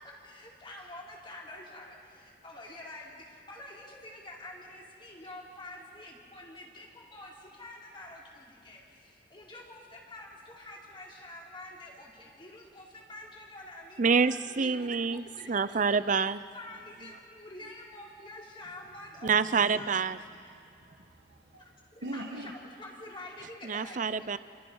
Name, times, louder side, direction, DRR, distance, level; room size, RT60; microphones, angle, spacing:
voice 1, 0.0-14.9 15.3-16.0 16.5-20.6 21.6-24.3, left 1 dB, 30° left, -3 dB, 4.5 m, -47 dB
voice 2, 14.0-16.4 19.2-20.2 23.6-24.4, right 5 dB, 45° right, 14 dB, 0.6 m, -27 dB
voice 3, 19.3-19.8 20.5-22.5, right 1 dB, 75° right, -1 dB, 1.6 m, -43 dB
29.0 x 28.5 x 5.6 m, 2.3 s
head